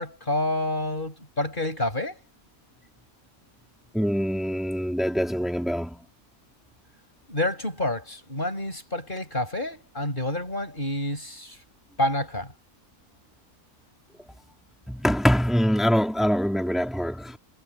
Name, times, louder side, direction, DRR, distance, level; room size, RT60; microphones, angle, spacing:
voice 1, 0.0-2.2 7.3-11.6 12.0-12.5, left 1 dB, 35° left, 6.5 m, -28 dB
voice 2, 3.9-6.0 14.9-17.4, equal, ahead, 3.6 m, -24 dB
omnidirectional pair, 1.6 m